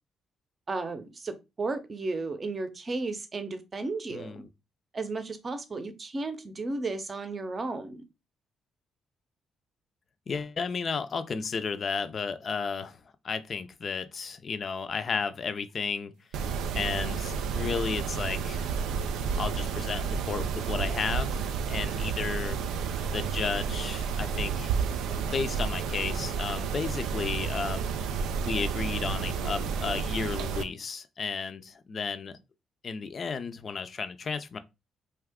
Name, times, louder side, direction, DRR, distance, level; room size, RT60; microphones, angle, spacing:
voice 1, 0.7-1.3 1.6-4.4 4.9-8.0, right 3 dB, 35° right, 0.6 m, -34 dB
voice 2, 4.1-4.5 10.3-16.1 16.7-18.7 19.4-22.6 23.1-24.8 25.1-27.9 28.5-32.4 32.8-34.6, left 5 dB, 45° left, 0.4 m, -33 dB
Mechanisms, 16.3-30.6, right 6 dB, 85° right, 0.3 m, -31 dB
2.7 x 2.3 x 3.5 m
cardioid pair, 90°, 0 cm